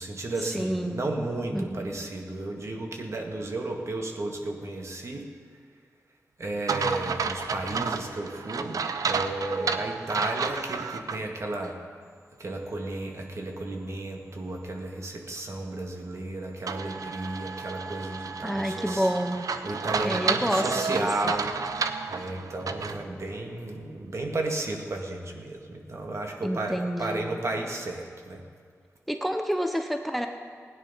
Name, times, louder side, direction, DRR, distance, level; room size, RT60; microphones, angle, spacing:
voice 1, 0.0-5.3 6.4-11.8 12.4-19.1 19.6-21.6 22.1-28.4, right 2 dB, 55° right, 1 dB, 1.9 m, -33 dB
voice 2, 0.5-1.1 1.5-2.0 18.4-19.5 20.0-21.1 26.4-27.4 29.1-30.3, equal, ahead, 5 dB, 0.8 m, -29 dB
sound 1, 6.7-11.2 11.6-11.7 16.7-23.0, right 5 dB, 85° right, 0.7 m, -31 dB
17.0 x 10.0 x 5.6 m, 2.1 s
wide cardioid pair, 70°, 6 cm